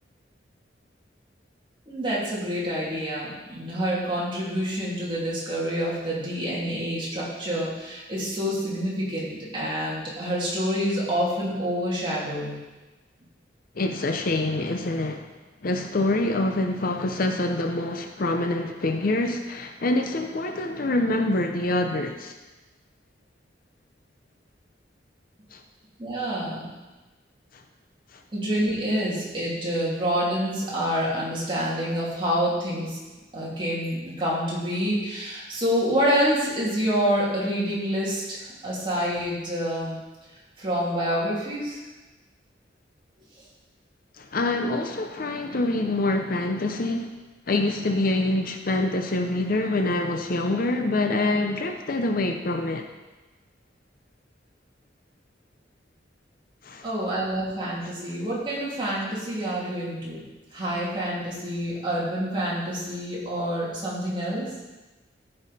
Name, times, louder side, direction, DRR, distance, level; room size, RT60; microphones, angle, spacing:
voice 1, 1.9-12.6 26.0-26.7 28.3-33.0 33.3-40.0 40.6-41.8 56.8-60.3 60.5-64.5, equal, 25° right, -7 dB, 2.9 m, -27 dB
voice 2, 13.8-15.2 15.6-22.3 25.5-25.6 27.5-27.6 28.1-28.2 44.2-47.1 47.5-52.9 56.6-56.9, left 2 dB, 50° left, 5 dB, 0.7 m, -25 dB
13.5 x 5.6 x 4.2 m, 1.1 s
head